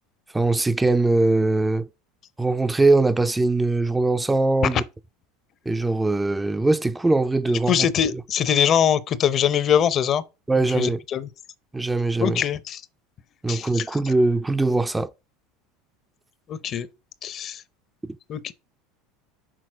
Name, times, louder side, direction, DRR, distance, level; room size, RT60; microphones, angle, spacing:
voice 1, 0.3-1.9 2.4-4.8 5.7-7.9 10.5-11.0 11.7-12.4 13.4-15.1, right 2 dB, 10° right, 0.4 m, -21 dB
voice 2, 7.7-10.2 10.7-11.3 12.2-12.8 13.5-14.1 16.5-16.9 17.2-17.6 18.3-18.5, left 9 dB, 45° left, 0.6 m, -23 dB
6.2 x 4.2 x 4.5 m
hypercardioid pair, 80°, 0 cm